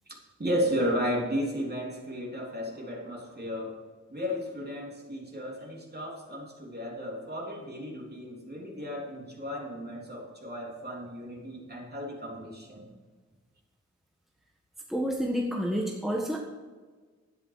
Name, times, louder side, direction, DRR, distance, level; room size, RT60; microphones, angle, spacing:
voice 1, 0.4-3.8 4.1-12.9, equal, 35° right, -1 dB, 3.3 m, -34 dB
voice 2, 14.9-16.4, equal, ahead, -1 dB, 1.4 m, -29 dB
12.0 x 10.0 x 4.8 m, 1.4 s
wide cardioid pair, 110°, 29 cm